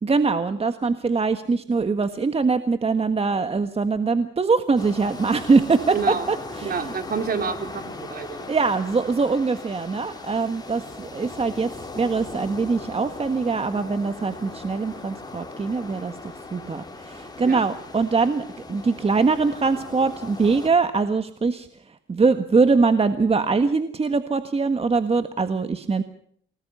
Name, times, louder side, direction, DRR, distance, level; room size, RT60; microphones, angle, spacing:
voice 1, 0.0-6.9 8.5-26.0, right 4 dB, 30° right, 9 dB, 1.6 m, -23 dB
sound 1, 4.8-20.7, left 3 dB, 20° left, 6.1 m, -39 dB
voice 2, 5.9-6.2 6.6-8.5 17.4-17.6, right 6 dB, 50° right, 7 dB, 3.5 m, -28 dB
29.0 x 19.5 x 5.6 m, 0.62 s
cardioid pair, 90°, 20 cm